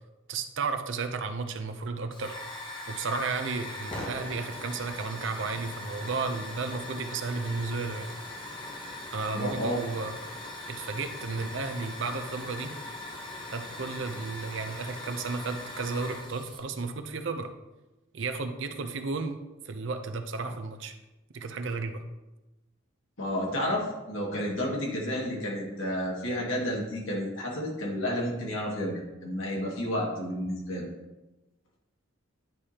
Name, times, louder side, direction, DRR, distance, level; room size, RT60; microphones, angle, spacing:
voice 1, 0.3-2.4 2.9-8.1 9.1-10.1 10.7-12.7 13.5-17.5 18.1-19.4 19.7-20.9 21.3-22.0, right 4 dB, 60° right, 8 dB, 0.6 m, -33 dB
Hiss / Fire, 2.1-16.6, left 2 dB, 25° left, 1.0 m, -40 dB
voice 2, 9.3-9.8 23.2-30.9, equal, 70° left, -3 dB, 2.0 m, -31 dB
10.5 x 4.8 x 2.9 m, 1.0 s
head